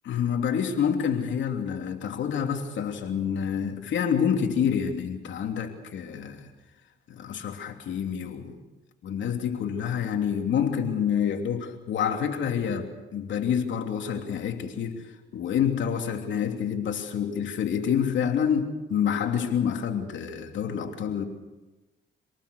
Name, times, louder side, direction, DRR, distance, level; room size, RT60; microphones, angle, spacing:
voice 1, 0.0-6.5 7.1-8.6 9.0-15.0 15.3-21.2, left 8 dB, 70° left, 3.1 m, -27 dB
27.0 x 19.5 x 6.8 m
cardioid pair, 90°, 20 cm